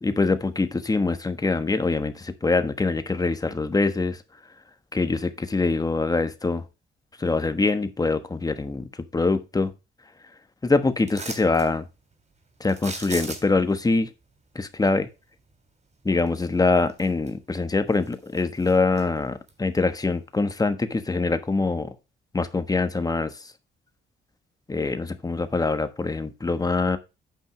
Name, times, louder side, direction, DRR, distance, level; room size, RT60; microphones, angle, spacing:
voice 1, 0.0-4.2 4.9-6.6 7.2-8.9 9.1-9.7 10.6-11.8 12.6-14.1 14.5-15.1 16.0-21.9 22.3-23.3 24.7-27.0, left 3 dB, 20° left, 10 dB, 1.2 m, -24 dB
sound 1, 11.1-11.7 12.7-13.7 16.3-16.4 16.9-17.6 17.9-19.0 19.5-19.6, right 3 dB, 35° right, 3.2 m, -37 dB
9.0 x 5.6 x 4.9 m, 0.27 s
cardioid pair, 90°, 20 cm